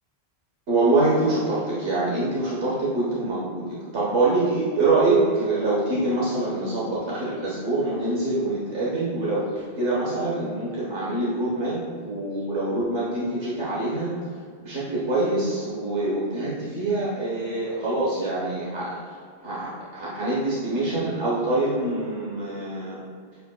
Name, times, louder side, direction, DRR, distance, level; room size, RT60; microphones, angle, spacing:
voice 1, 0.7-14.1 14.6-19.2 19.4-23.0, right 2 dB, 85° right, -8 dB, 1.6 m, -25 dB
9.8 x 5.4 x 2.3 m, 2.1 s
omnidirectional pair, 1.1 m